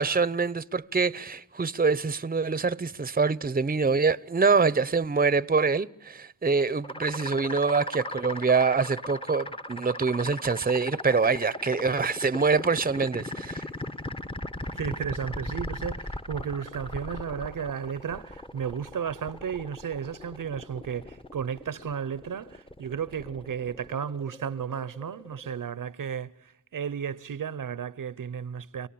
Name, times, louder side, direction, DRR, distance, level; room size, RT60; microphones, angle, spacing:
voice 1, 0.0-13.7, right 4 dB, 25° right, 0.8 m, -25 dB
sound 1, 6.8-25.6, left 1 dB, 15° left, 1.2 m, -38 dB
voice 2, 14.7-28.9, right 7 dB, 75° right, 0.9 m, -34 dB
30.0 x 18.0 x 8.7 m
cardioid pair, 55°, 33 cm